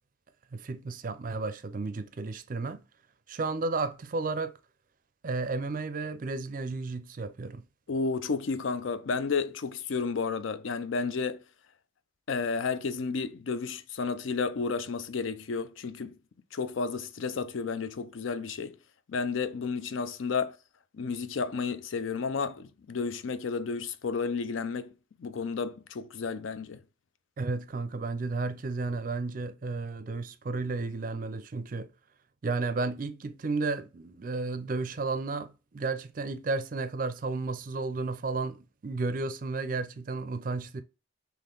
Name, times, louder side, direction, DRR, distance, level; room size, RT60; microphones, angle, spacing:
voice 1, 0.5-2.8 3.3-4.6 5.2-7.6 27.4-31.9 32.4-40.8, right 3 dB, 40° right, 0.4 m, -33 dB
voice 2, 7.9-11.4 12.3-16.2 16.5-18.8 19.1-20.6 20.9-24.9 25.2-26.8, left 5 dB, 75° left, 0.4 m, -32 dB
3.7 x 3.0 x 3.7 m
head